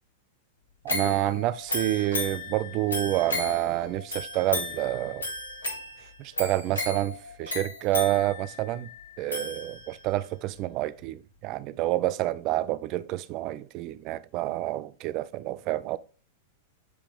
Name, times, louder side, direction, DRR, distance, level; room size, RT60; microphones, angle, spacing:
voice 1, 0.8-5.3 6.2-8.9 9.2-16.0, right 15 dB, 40° right, 0.4 m, -28 dB
sound 1, 0.9-10.1 10.6-10.7, left 2 dB, 80° left, 1.4 m, -35 dB
7.6 x 3.5 x 3.5 m
figure-of-eight pair, 95°, 0 cm